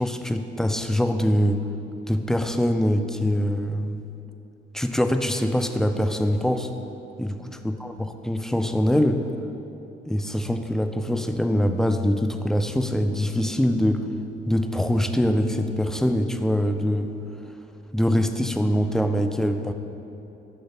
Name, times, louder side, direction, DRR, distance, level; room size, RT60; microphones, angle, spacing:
voice 1, 0.0-1.6 2.1-4.0 4.7-6.7 7.2-7.6 8.2-9.2 10.1-14.1 14.5-17.1 17.9-19.7, equal, ahead, 6 dB, 0.3 m, -23 dB
6.7 x 3.9 x 5.6 m, 2.9 s
cardioid pair, 90°, 20 cm